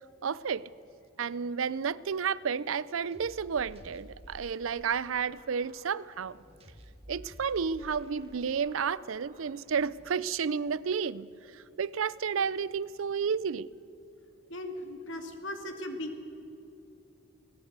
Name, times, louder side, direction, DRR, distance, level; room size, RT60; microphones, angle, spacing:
voice 1, 0.2-0.7 1.2-6.4 7.1-11.3 11.5-13.7, right 6 dB, 85° right, 0.5 m, -31 dB
sound 1, 3.1-10.1, equal, 30° right, 2.1 m, -53 dB
voice 2, 14.5-16.2, left 1 dB, 70° left, 2.4 m, -38 dB
20.5 x 17.5 x 8.1 m
head